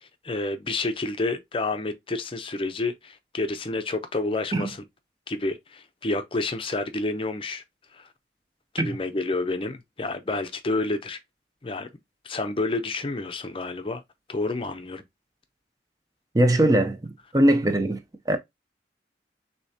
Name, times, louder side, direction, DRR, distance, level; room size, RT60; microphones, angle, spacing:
voice 1, 0.0-4.8 5.3-7.6 7.9-8.1 8.7-11.2 11.6-11.9 12.2-14.0 14.3-15.0, left 2 dB, 30° left, 0.6 m, -29 dB
voice 2, 16.3-18.0 18.3-18.4, right 1 dB, 20° right, 0.5 m, -21 dB
6.6 x 2.8 x 2.7 m
head